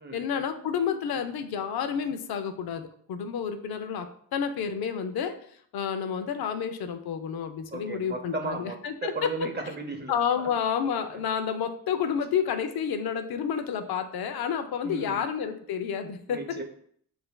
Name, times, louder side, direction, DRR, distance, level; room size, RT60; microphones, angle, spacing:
voice 1, 0.1-5.4 5.7-9.3 10.1-16.4, left 7 dB, 65° left, 7 dB, 0.6 m, -30 dB
voice 2, 7.7-10.5 11.1-11.2 14.8-15.2 16.3-16.6, right 3 dB, 25° right, 4 dB, 0.6 m, -36 dB
7.6 x 2.6 x 2.2 m, 0.63 s
cardioid pair, 90°, 40 cm